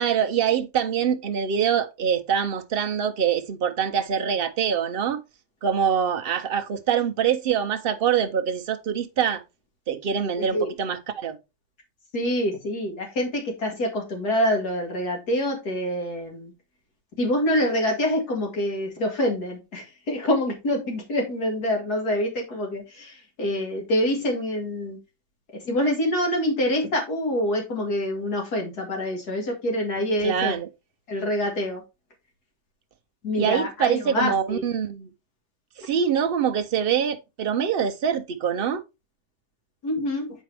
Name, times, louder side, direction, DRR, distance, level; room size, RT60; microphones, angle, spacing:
voice 1, 0.0-5.2 5.6-9.4 9.9-11.4 30.2-30.7 33.4-35.1 35.8-38.8, right 8 dB, 65° right, 0.5 m, -24 dB
voice 2, 10.4-10.7 12.1-16.5 17.2-25.0 25.6-30.5 31.1-31.8 33.2-34.6 39.8-40.3, left 1 dB, 75° left, 2.5 m, -26 dB
7.3 x 5.1 x 3.3 m
omnidirectional pair, 1.7 m